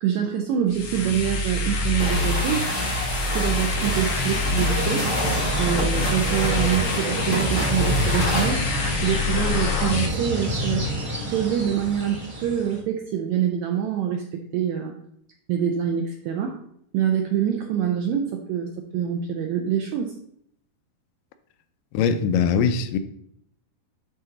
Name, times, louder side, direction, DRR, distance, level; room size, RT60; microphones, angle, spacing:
voice 1, 0.0-2.7 3.4-5.1 5.6-8.6 9.0-10.8 11.3-14.9 15.5-16.6 16.9-20.1, right 9 dB, 85° right, 1.7 m, -25 dB
sound 1, 0.7-10.1, left 2 dB, 65° left, 1.6 m, -26 dB
sound 2, 2.0-8.6, equal, 20° left, 2.1 m, -29 dB
sound 3, 4.6-12.8, equal, 65° right, 0.4 m, -29 dB
voice 2, 21.9-23.0, left 6 dB, 85° left, 2.1 m, -21 dB
10.5 x 3.8 x 3.9 m
omnidirectional pair, 3.9 m